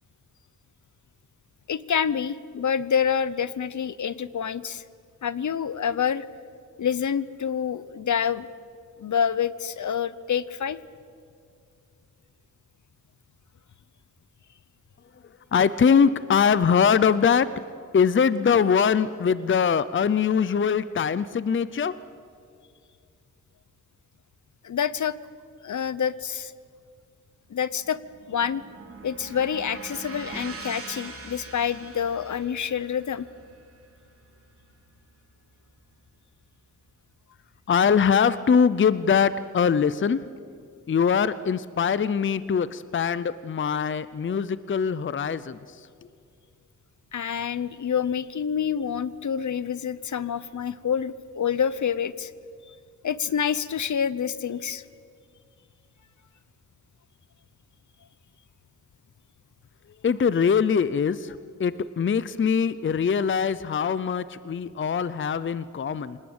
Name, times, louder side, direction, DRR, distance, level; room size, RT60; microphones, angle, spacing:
voice 1, 1.7-4.8 5.2-6.2 6.8-8.5 9.0-10.8 24.6-25.1 25.6-26.5 27.5-28.0 28.3-28.6 29.0-33.3 47.1-52.3 53.0-54.8, left 8 dB, 65° left, 17 dB, 0.8 m, -27 dB
voice 2, 15.5-17.5 17.9-22.0 37.7-40.3 40.9-45.6 60.0-66.2, left 6 dB, 40° left, 16 dB, 0.6 m, -22 dB
sound 1, 27.6-35.9, right 4 dB, 45° right, 3.3 m, -43 dB
27.0 x 19.0 x 8.8 m, 2.3 s
wide cardioid pair, 135°, 31 cm